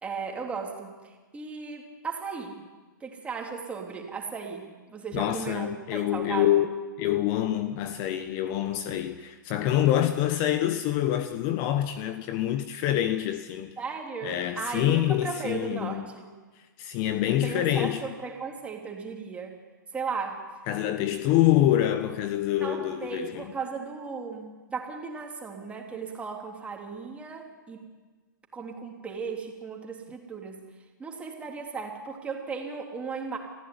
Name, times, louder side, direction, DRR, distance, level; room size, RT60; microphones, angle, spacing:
voice 1, 0.0-2.6 3.0-6.6 13.8-16.3 17.3-19.5 19.9-20.4 22.6-27.9 28.5-30.6 31.0-33.4, right 5 dB, 10° right, 3.5 m, -36 dB
voice 2, 5.1-6.7 7.0-13.7 14.2-16.1 16.8-18.0 20.7-23.5, left 12 dB, 35° left, 1.1 m, -26 dB
23.0 x 15.5 x 9.8 m
hypercardioid pair, 135°, 11 cm